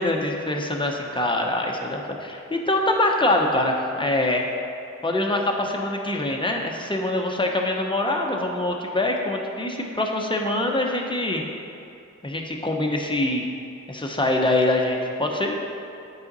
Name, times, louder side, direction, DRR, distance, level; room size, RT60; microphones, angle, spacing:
voice 1, 0.0-4.5 5.0-11.4 12.2-13.5 13.9-15.5, left 1 dB, 15° left, 1 dB, 0.9 m, -24 dB
8.7 x 5.0 x 4.1 m, 2.6 s
wide cardioid pair, 40°, 30 cm